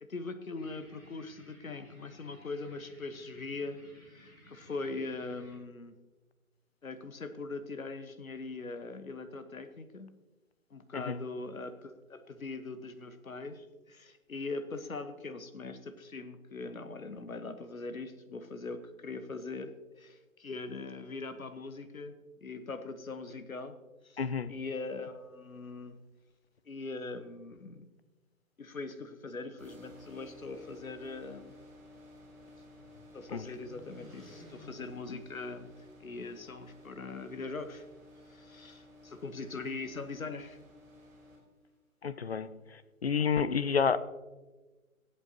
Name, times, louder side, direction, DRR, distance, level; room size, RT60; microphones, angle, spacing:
voice 1, 0.0-3.8 4.1-6.0 6.8-10.1 10.7-22.2 22.4-23.8 24.0-24.2 24.5-26.0 26.7-27.9 28.6-31.5 33.1-35.7 36.0-37.9 38.3-40.6, left 3 dB, 70° left, 1.3 m, -41 dB
sound 1, 0.5-5.5, left 1 dB, 25° left, 3.4 m, -58 dB
voice 2, 24.2-24.5 33.3-33.5 42.0-44.0, left 6 dB, 45° left, 0.6 m, -30 dB
sound 2, 29.6-41.4, left 1 dB, 20° right, 3.6 m, -55 dB
sound 3, 31.8-36.2, left 1 dB, ahead, 0.8 m, -56 dB
23.5 x 8.2 x 2.9 m
figure-of-eight pair, 145°, 43 cm